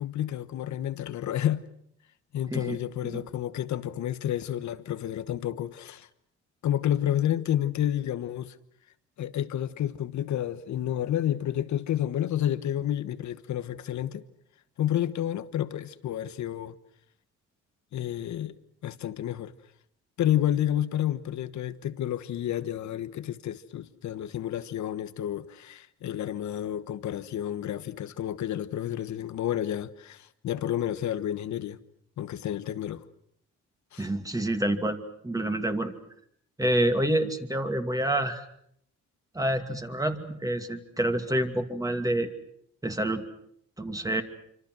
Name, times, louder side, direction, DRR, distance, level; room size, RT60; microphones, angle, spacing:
voice 1, 0.0-1.6 2.3-6.1 6.6-8.5 9.2-14.2 14.8-16.8 17.9-18.5 18.8-19.5 20.2-31.8 32.2-33.0 33.9-34.1, left 11 dB, 70° left, 1.3 m, -30 dB
voice 2, 34.0-35.0 35.2-35.9 36.6-38.4 39.3-42.3 42.8-43.2 43.8-44.2, right 1 dB, 10° right, 2.5 m, -27 dB
26.5 x 26.0 x 6.3 m
cardioid pair, 90°, 30 cm